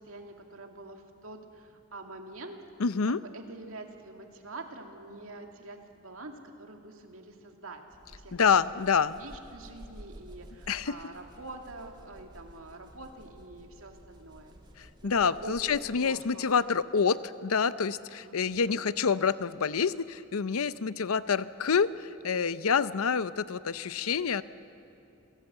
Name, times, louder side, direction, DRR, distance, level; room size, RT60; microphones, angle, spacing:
voice 1, 0.0-2.6 3.1-8.4 8.7-8.8 9.1-14.5 15.0-15.6 16.0-16.6 18.2-18.8, right 2 dB, 70° right, 3 dB, 2.4 m, -46 dB
voice 2, 2.8-3.2 8.3-9.2 10.7-11.0 14.8-24.4, left 6 dB, 85° left, 15 dB, 0.6 m, -27 dB
sound 1, 7.9-16.2, equal, 20° right, 2.5 m, -52 dB
28.5 x 17.5 x 8.1 m, 2.9 s
head